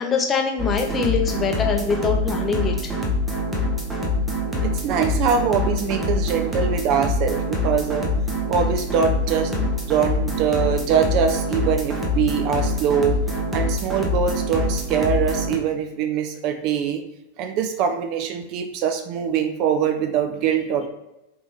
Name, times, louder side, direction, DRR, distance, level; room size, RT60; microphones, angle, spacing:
voice 1, 0.0-2.7, left 5 dB, 20° left, 3 dB, 0.6 m, -23 dB
sound 1, 0.6-15.6, left 1 dB, 10° right, 0.8 m, -25 dB
voice 2, 4.6-8.1 8.5-9.5 9.9-13.2 13.5-17.0 17.4-20.9, right 7 dB, 40° right, 6 dB, 0.4 m, -23 dB
3.5 x 2.9 x 3.1 m, 0.91 s
figure-of-eight pair, 90°, 0 cm